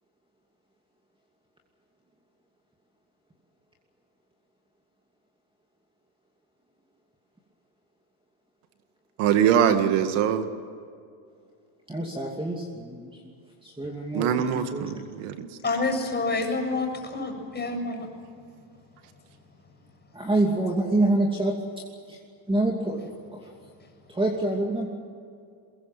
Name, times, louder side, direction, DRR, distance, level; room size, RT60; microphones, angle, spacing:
voice 1, 9.2-10.4 14.1-15.5, right 9 dB, 80° right, 8 dB, 2.0 m, -23 dB
voice 2, 11.9-13.2 13.6-15.0 15.7-15.8 20.1-21.6 22.1-22.2 22.5-23.5 24.1-24.9, right 2 dB, 10° right, 0 dB, 2.7 m, -27 dB
voice 3, 15.6-18.1, left 3 dB, 20° left, 4 dB, 7.1 m, -28 dB
23.5 x 22.5 x 7.6 m, 2.4 s
cardioid pair, 115°, 50 cm